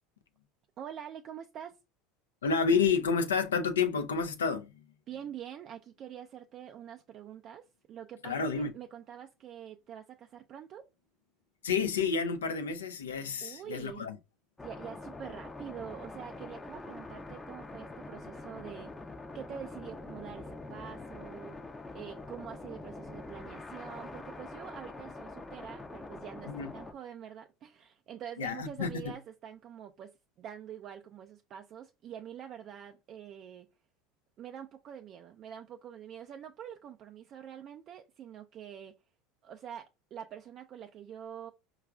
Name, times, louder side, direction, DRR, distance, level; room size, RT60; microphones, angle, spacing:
voice 1, 0.8-1.8 5.1-10.8 13.4-14.1 14.6-21.6 21.9-33.7 34.4-38.9 39.4-41.5, right 9 dB, 45° right, 0.3 m, -46 dB
voice 2, 2.4-4.9 8.2-8.7 11.6-14.2 26.5-26.7 28.4-28.9, left 5 dB, 90° left, 0.4 m, -29 dB
sound 1, 14.6-26.9, left 2 dB, 15° left, 0.5 m, -45 dB
4.7 x 2.3 x 2.3 m
hypercardioid pair, 85°, 0 cm